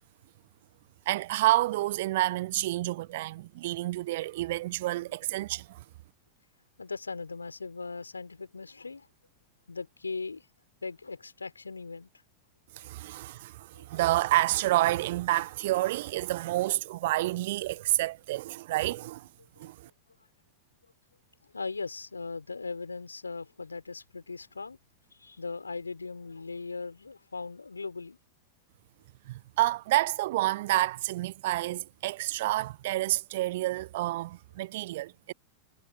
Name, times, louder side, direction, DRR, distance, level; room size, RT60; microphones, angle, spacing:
voice 1, 1.1-5.8 12.7-19.3 19.6-19.9 29.3-35.3, right 17 dB, 55° right, 0.5 m, -29 dB
voice 2, 6.8-9.1 9.7-10.5 10.8-12.1 13.7-13.9 19.6-19.7 21.5-24.8 25.2-28.2, left 4 dB, 80° left, 4.0 m, -39 dB
figure-of-eight pair, 90°, 0 cm